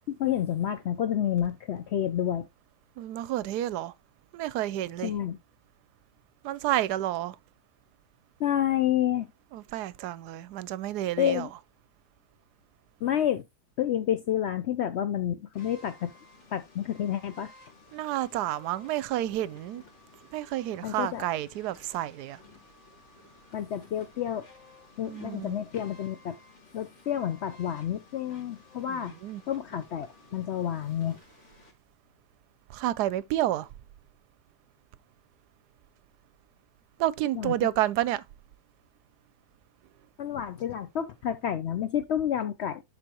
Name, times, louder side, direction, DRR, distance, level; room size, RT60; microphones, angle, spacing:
voice 1, 0.2-2.5 5.0-5.4 8.4-9.3 11.2-11.5 13.0-13.4 13.8-16.1 16.5-17.5 20.8-21.2 23.5-24.5 25.0-26.4 26.7-29.1 29.5-31.2 37.4-37.5 40.2-42.8, left 10 dB, 90° left, 0.5 m, -29 dB
voice 2, 3.0-3.9 4.3-5.1 6.4-7.4 9.5-11.5 17.9-19.8 20.3-22.4 25.0-25.6 28.9-29.4 32.7-33.7 37.0-38.2, right 14 dB, 75° right, 1.1 m, -30 dB
sound 1, 15.5-31.7, left 3 dB, 45° left, 2.2 m, -55 dB
11.5 x 4.1 x 2.9 m
omnidirectional pair, 1.8 m